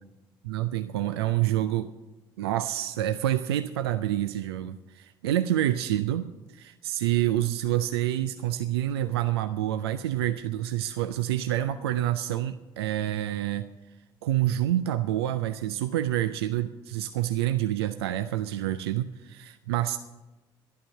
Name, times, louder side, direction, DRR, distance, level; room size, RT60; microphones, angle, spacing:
voice 1, 0.4-1.9 2.4-13.7 14.2-20.0, right 13 dB, 85° right, 10 dB, 0.4 m, -27 dB
12.0 x 11.0 x 6.5 m, 1.1 s
hypercardioid pair, 55°, 13 cm